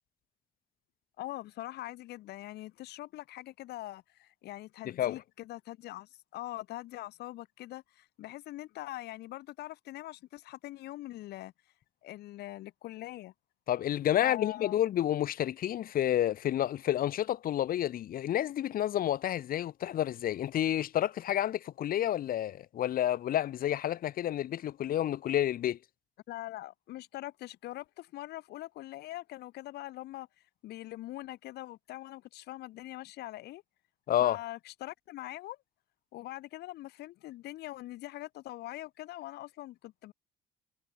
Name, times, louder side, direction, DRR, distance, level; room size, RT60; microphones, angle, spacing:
voice 1, 1.2-11.5 12.0-13.3 14.2-14.8 26.3-30.3 30.6-33.6 34.2-35.6 36.1-40.1, left 16 dB, 75° left, 1.8 m, -43 dB
voice 2, 13.7-25.8 34.1-34.4, left 11 dB, 60° left, 1.6 m, -30 dB
cardioid pair, 110°, 17 cm